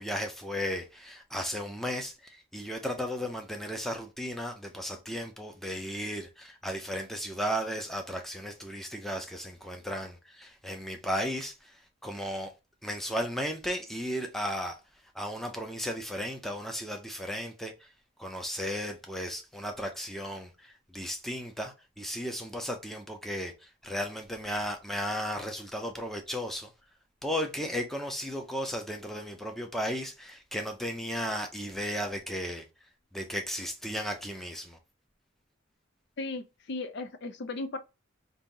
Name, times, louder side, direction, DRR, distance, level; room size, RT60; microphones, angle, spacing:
voice 1, 0.0-11.8 12.0-12.5 12.8-14.8 15.1-17.7 18.2-26.7 27.2-32.6 33.1-34.8, equal, ahead, 0.6 m, -35 dB
voice 2, 36.2-37.8, left 3 dB, 55° left, 0.5 m, -36 dB
4.1 x 2.6 x 3.8 m
head